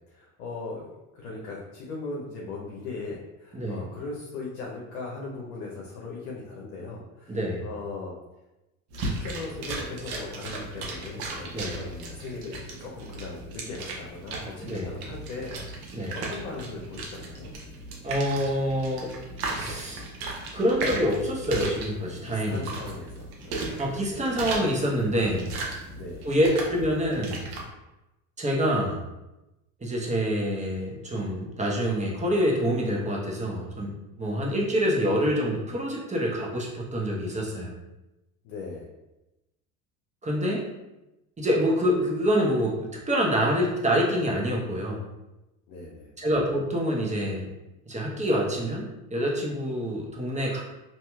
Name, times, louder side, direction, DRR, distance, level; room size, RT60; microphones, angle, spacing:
voice 1, 0.1-8.1 8.9-15.6 15.9-17.5 22.0-24.4 26.0-26.3 38.4-38.9 45.7-46.1, left 3 dB, 75° left, -3 dB, 0.8 m, -39 dB
voice 2, 3.5-3.8 7.3-7.6 11.5-11.8 14.6-14.9 15.9-16.2 18.0-19.1 19.5-20.0 20.5-22.6 23.8-25.5 26.2-27.5 28.4-29.0 29.8-33.9 34.2-37.7 40.2-40.6 41.4-45.0 46.2-47.5 47.9-48.8 49.1-50.6, equal, 15° right, -3 dB, 0.9 m, -26 dB
sound 1, 8.9-27.6, right 2 dB, 60° right, 0.9 m, -36 dB
2.8 x 2.8 x 2.3 m, 0.99 s
hypercardioid pair, 75°, 42 cm